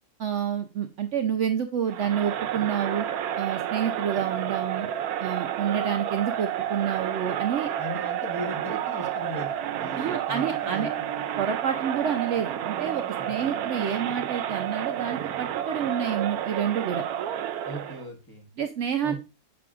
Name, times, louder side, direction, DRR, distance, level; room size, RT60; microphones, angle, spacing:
voice 1, 0.2-3.1 3.4-4.9 5.2-7.7 10.0-10.9 11.4-17.0 18.6-19.1, right 8 dB, 65° right, 5 dB, 0.8 m, -28 dB
Crowd, 1.9-18.1, right 10 dB, 90° right, 1.1 m, -30 dB
voice 2, 7.7-10.9 13.2-13.7 17.6-18.5 19.0-19.1, equal, 15° left, -1 dB, 1.2 m, -38 dB
6.7 x 6.1 x 2.4 m, 0.27 s
omnidirectional pair, 1.5 m